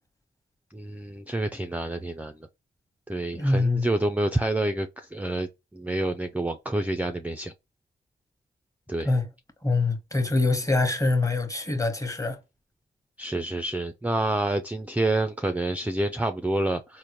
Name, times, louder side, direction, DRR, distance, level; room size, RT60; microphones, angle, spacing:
voice 1, 0.7-2.5 3.1-7.5 8.9-9.1 13.2-17.0, right 1 dB, 5° right, 0.4 m, -28 dB
voice 2, 3.3-3.9 9.0-9.3 9.6-12.4, left 2 dB, 15° left, 1.0 m, -24 dB
3.6 x 2.1 x 2.9 m
cardioid pair, 45°, 19 cm